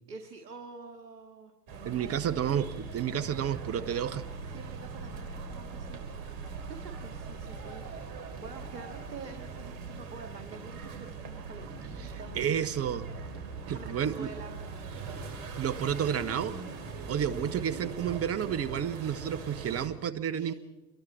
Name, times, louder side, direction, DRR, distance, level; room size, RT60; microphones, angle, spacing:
voice 1, 0.1-2.6 4.5-12.4 13.7-14.6 20.3-20.5, right 5 dB, 85° right, 5 dB, 2.2 m, -47 dB
sound 1, 1.7-19.9, right 4 dB, 55° right, 5.5 m, -41 dB
voice 2, 1.8-4.2 12.3-13.0 13.7-14.3 15.6-16.6 17.1-20.5, right 9 dB, 30° right, 16 dB, 1.3 m, -31 dB
27.0 x 22.5 x 4.3 m, 1.1 s
hypercardioid pair, 90°, 48 cm